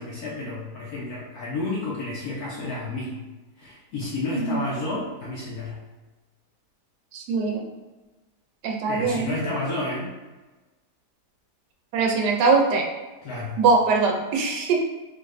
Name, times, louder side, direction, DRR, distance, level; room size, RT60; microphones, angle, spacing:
voice 1, 0.0-3.1 3.6-5.8 8.9-10.1 13.2-13.6, left 2 dB, 70° left, -6 dB, 1.2 m, -31 dB
voice 2, 4.3-4.6 7.1-7.6 8.6-9.3 11.9-12.9 13.6-14.8, right 4 dB, 85° right, 1 dB, 1.2 m, -22 dB
3.7 x 2.4 x 3.2 m, 1.2 s
omnidirectional pair, 1.8 m